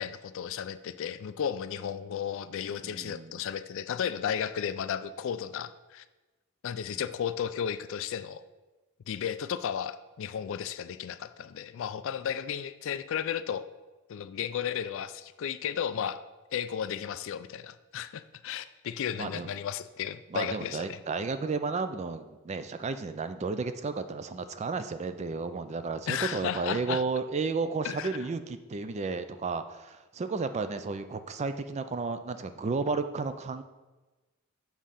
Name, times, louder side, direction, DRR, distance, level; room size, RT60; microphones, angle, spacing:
voice 1, 0.0-6.0 6.6-8.4 9.1-13.6 14.1-16.2 16.5-21.0 26.1-27.0 27.8-28.2, left 8 dB, 60° left, 13 dB, 0.3 m, -34 dB
voice 2, 2.7-3.4 6.9-7.0 19.2-19.5 20.3-33.6, right 4 dB, 30° right, 10 dB, 0.4 m, -33 dB
7.2 x 3.7 x 5.6 m, 1.2 s
head